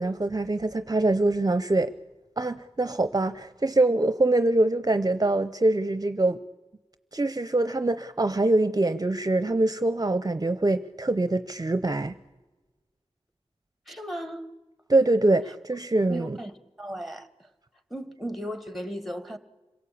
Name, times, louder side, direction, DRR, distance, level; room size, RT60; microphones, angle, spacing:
voice 1, 0.0-1.9 2.4-6.4 7.1-12.1 14.9-16.4, right 2 dB, 35° right, 0.7 m, -24 dB
voice 2, 13.9-14.4 16.1-16.5 16.8-17.3 17.9-19.4, equal, ahead, 1.8 m, -35 dB
26.5 x 17.5 x 8.6 m
wide cardioid pair, 60°, 11 cm